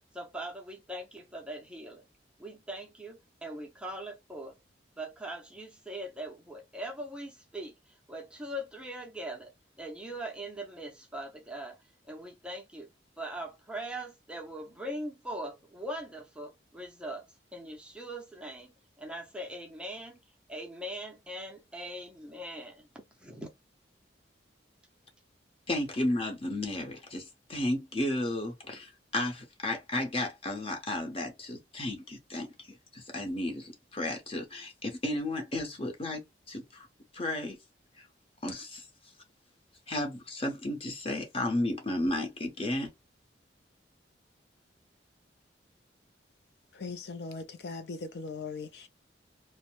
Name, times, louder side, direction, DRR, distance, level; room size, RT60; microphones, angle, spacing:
voice 1, 0.1-2.1 2.4-4.6 5.0-12.9 13.2-20.2 20.5-22.9 23.1-23.5, right 1 dB, 5° right, 0.5 m, -41 dB
voice 2, 25.7-36.2 36.5-36.9 37.1-37.6 38.0-38.1 38.4-38.9 39.9-42.9, left 1 dB, 30° left, 0.8 m, -33 dB
voice 3, 46.7-48.9, left 4 dB, 60° left, 0.4 m, -39 dB
2.6 x 2.0 x 3.0 m
head